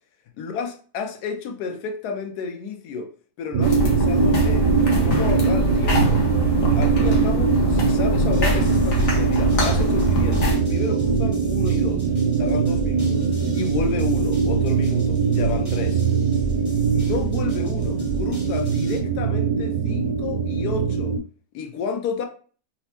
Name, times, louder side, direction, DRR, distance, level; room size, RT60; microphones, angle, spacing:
voice 1, 0.4-3.1 3.4-4.7 5.0-6.2 6.7-12.0 12.4-16.0 16.9-21.2 21.5-22.3, left 5 dB, 85° left, 1.2 m, -31 dB
sound 1, 3.5-21.2, right 5 dB, 75° right, 1.0 m, -21 dB
sound 2, 3.6-10.6, left 1 dB, 60° left, 1.2 m, -24 dB
sound 3, 8.3-19.0, right 1 dB, 35° left, 0.6 m, -35 dB
4.3 x 2.0 x 2.8 m
omnidirectional pair, 1.6 m